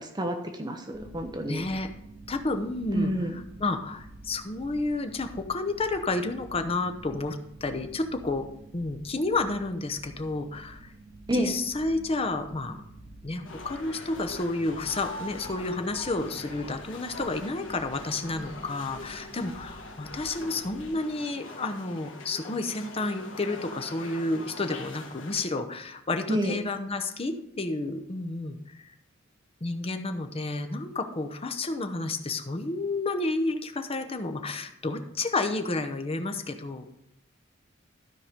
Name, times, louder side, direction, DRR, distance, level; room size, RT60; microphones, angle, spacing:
voice 1, 0.0-1.6 2.9-3.3 11.3-11.5 26.3-26.5, equal, 20° right, 5 dB, 0.8 m, -29 dB
sound 1, 0.9-20.9, right 2 dB, 50° right, 1.5 m, -49 dB
voice 2, 1.5-1.9 2.3-3.1 3.6-8.4 8.7-10.9 11.3-12.8 13.2-28.9 29.6-36.9, left 2 dB, 30° left, 7 dB, 0.7 m, -31 dB
sound 2, 13.4-25.5, left 2 dB, 75° left, 1.5 m, -43 dB
12.5 x 4.8 x 5.1 m, 0.78 s
head